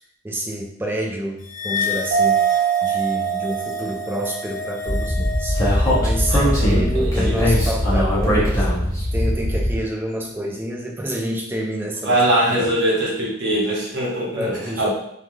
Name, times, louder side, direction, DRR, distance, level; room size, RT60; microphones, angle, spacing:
voice 1, 0.2-2.4 2.8-5.6 6.0-8.7 9.1-12.7 14.2-14.9, right 1 dB, 10° right, 0 dB, 0.3 m, -28 dB
sound 1, 1.5-8.1, left 4 dB, 60° left, 0.4 m, -31 dB
Mallet percussion, 2.1-4.6, right 9 dB, 75° right, 0.5 m, -22 dB
Speech, 4.8-9.8, equal, 15° left, 0.7 m, -20 dB
voice 2, 6.3-7.6 12.0-14.9, right 1 dB, 60° right, -6 dB, 0.9 m, -22 dB
3.2 x 2.3 x 2.6 m, 0.75 s
head